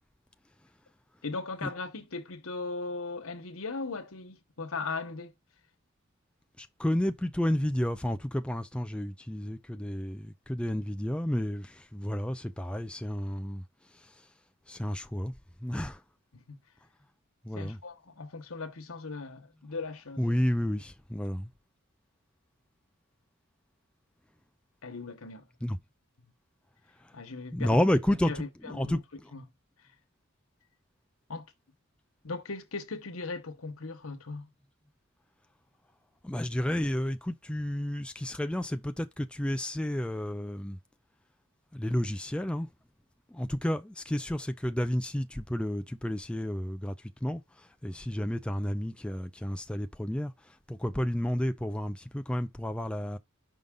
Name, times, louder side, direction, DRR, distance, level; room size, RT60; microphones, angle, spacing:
voice 1, 1.2-5.3 16.3-16.6 17.5-20.3 24.8-25.5 27.1-27.8 28.3-29.0 29.3-29.4 31.3-31.5 32.2-34.5, left 3 dB, 90° left, 1.2 m, -38 dB
voice 2, 6.6-14.3 14.7-15.3 15.6-16.0 17.4-17.8 20.2-21.5 25.6-25.8 27.0-27.2 27.5-29.3 36.2-40.8 41.7-42.7 43.3-53.2, left 1 dB, 5° left, 0.3 m, -31 dB
5.4 x 4.8 x 3.7 m
head